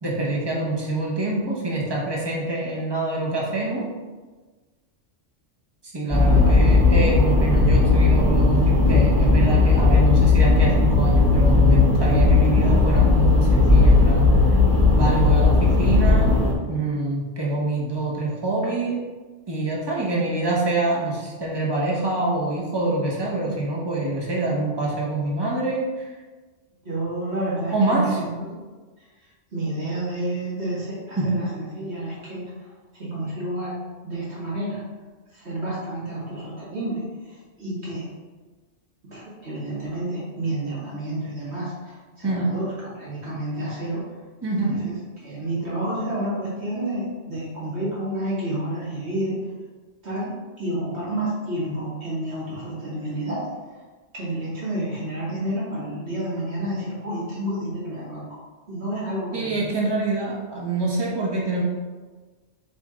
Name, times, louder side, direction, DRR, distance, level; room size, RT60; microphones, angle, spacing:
voice 1, 0.0-3.9 5.9-14.3 15.0-16.4 16.7-19.0 19.5-26.1 27.7-28.2 31.2-31.3 42.2-42.4 44.4-44.8 59.3-61.6, right 2 dB, 20° right, -4 dB, 1.2 m, -25 dB
sound 1, 6.1-16.5, left 3 dB, 15° left, 1.1 m, -17 dB
voice 2, 6.3-6.8 26.8-28.5 29.5-32.7 32.9-33.7 34.0-34.8 35.3-38.1 39.1-44.0 44.6-44.9 45.2-49.4 50.0-50.3 50.6-53.4 54.1-58.3 58.7-59.6, right 1 dB, 60° right, -8 dB, 2.3 m, -30 dB
7.1 x 3.5 x 3.8 m, 1.3 s
omnidirectional pair, 1.3 m